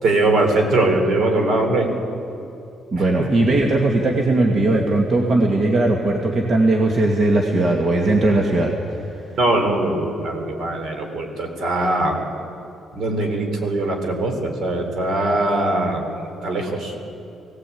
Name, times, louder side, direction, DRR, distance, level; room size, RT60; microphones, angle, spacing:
voice 1, 0.0-1.9 3.2-3.3 9.4-12.1 12.9-16.0 16.4-16.9, right 2 dB, 65° right, 4 dB, 3.9 m, -21 dB
voice 2, 2.9-8.7, right 2 dB, 45° right, 1 dB, 2.0 m, -18 dB
18.0 x 17.5 x 8.6 m, 2.8 s
cardioid pair, 90°, 0 cm